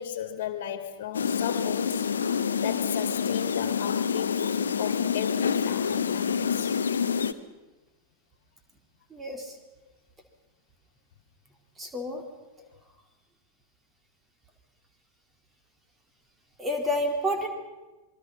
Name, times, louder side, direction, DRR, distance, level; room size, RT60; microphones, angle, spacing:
voice 1, 0.0-2.0 2.6-4.5 4.8-6.8 12.6-12.7, left 10 dB, 50° left, 2.5 m, -35 dB
sound 1, 1.1-7.3, left 6 dB, 70° left, 1.0 m, -27 dB
voice 2, 9.1-9.5 11.8-12.2 16.6-17.5, equal, 15° right, 4.3 m, -29 dB
27.0 x 22.5 x 5.9 m
figure-of-eight pair, 90°, 0 cm